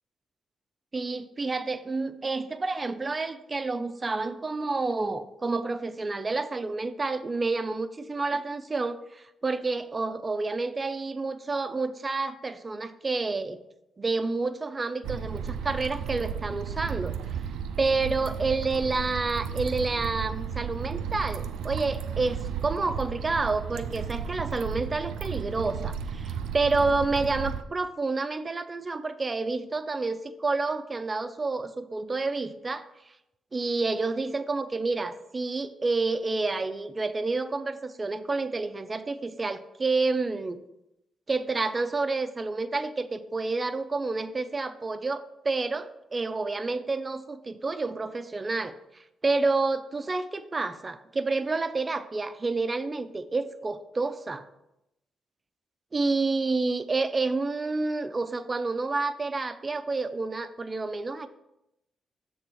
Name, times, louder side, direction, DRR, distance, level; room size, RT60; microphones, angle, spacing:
voice 1, 0.9-13.6 14.0-17.2 17.8-32.9 33.5-40.6 41.3-54.4 55.9-61.3, right 3 dB, 35° right, 11 dB, 0.5 m, -29 dB
sound 1, 15.0-27.6, right 7 dB, 85° right, 0.4 m, -34 dB
6.6 x 3.5 x 6.0 m, 0.87 s
supercardioid pair, 60°, 0 cm